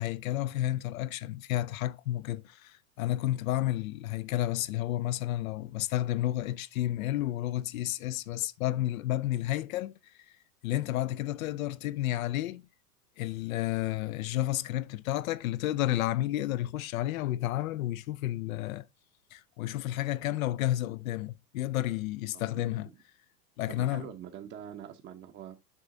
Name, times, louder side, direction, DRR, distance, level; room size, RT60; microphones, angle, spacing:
voice 1, 0.0-9.9 10.6-12.7 13.2-18.9 19.3-22.9 23.6-24.1, left 14 dB, 60° left, 0.6 m, -31 dB
voice 2, 22.3-22.8 23.7-25.6, right 9 dB, 25° right, 0.8 m, -44 dB
7.3 x 5.4 x 3.8 m
hypercardioid pair, 105°, 47 cm